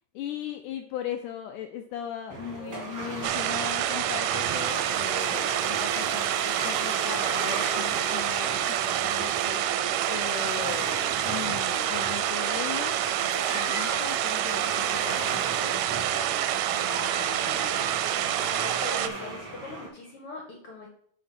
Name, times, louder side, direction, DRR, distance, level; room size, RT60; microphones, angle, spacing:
voice 1, 0.2-18.0, left 9 dB, 75° left, 5 dB, 2.0 m, -39 dB
sound 1, 2.3-19.9, right 3 dB, 40° right, 1.8 m, -36 dB
sound 2, 3.2-19.1, right 12 dB, 80° right, 2.1 m, -28 dB
sound 3, 7.3-7.9 8.5-8.8 9.3-9.7 10.6-11.0 12.0-12.1 13.0-14.0 14.4-14.8 15.4-15.6 16.2-16.4 16.9-18.0, equal, 10° left, 1.9 m, -41 dB
voice 2, 18.5-20.9, left 3 dB, 50° left, 1 dB, 1.8 m, -41 dB
6.6 x 5.4 x 5.9 m, 0.63 s
omnidirectional pair, 4.0 m